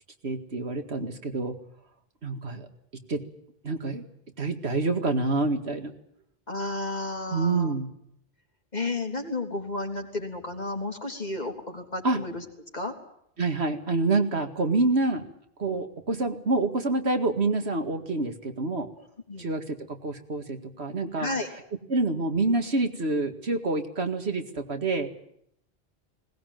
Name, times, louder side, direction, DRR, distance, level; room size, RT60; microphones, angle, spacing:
voice 1, 0.2-1.6 2.2-2.7 3.1-3.2 3.6-4.1 4.4-5.9 7.3-7.9 12.0-12.2 13.4-15.3 15.6-18.9 19.4-21.3 21.9-25.1, right 3 dB, 85° right, 6 dB, 2.4 m, -27 dB
voice 2, 6.5-7.7 8.7-12.4 12.7-12.9 19.3-19.5 21.2-21.5, left 2 dB, 40° left, 2 dB, 3.8 m, -32 dB
21.0 x 19.0 x 9.2 m, 0.72 s
omnidirectional pair, 1.1 m